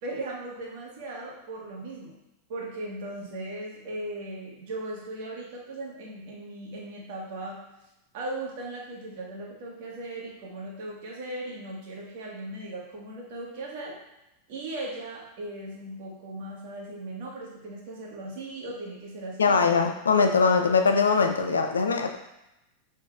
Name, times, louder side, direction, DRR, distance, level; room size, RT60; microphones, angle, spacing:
voice 1, 0.0-2.1 2.5-7.6 8.1-14.0 14.5-19.8, right 2 dB, 60° right, -3 dB, 1.5 m, -38 dB
voice 2, 19.4-22.2, left 5 dB, 85° left, 5 dB, 0.5 m, -22 dB
5.7 x 3.7 x 2.4 m, 0.91 s
hypercardioid pair, 95°, 0 cm